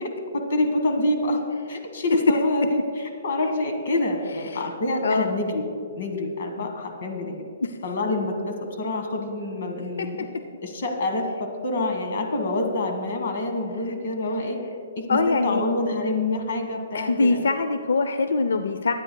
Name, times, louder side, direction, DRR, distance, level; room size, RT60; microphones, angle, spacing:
voice 1, 0.0-5.7 5.9-7.5 7.8-10.3 10.6-14.6 15.0-17.5, left 2 dB, 50° left, 4 dB, 1.5 m, -27 dB
voice 2, 5.0-5.3 6.6-6.7 7.2-7.3 7.7-7.8 10.0-10.1 15.1-15.6 16.9-18.9, left 3 dB, 90° left, 9 dB, 0.5 m, -23 dB
21.0 x 9.0 x 2.3 m, 2.2 s
hypercardioid pair, 175°, 0 cm